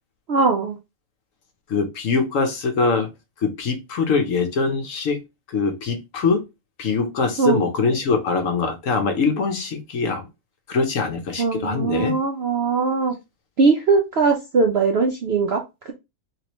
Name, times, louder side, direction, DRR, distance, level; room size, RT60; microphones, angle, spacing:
voice 1, 0.3-0.7 7.4-7.6 11.4-13.1 13.6-15.6, right 4 dB, 65° right, 0.6 m, -20 dB
voice 2, 1.7-3.1 3.4-5.2 5.5-6.4 6.8-10.3 10.7-12.1, left 4 dB, 60° left, 1.0 m, -23 dB
3.1 x 3.1 x 3.0 m
omnidirectional pair, 1.7 m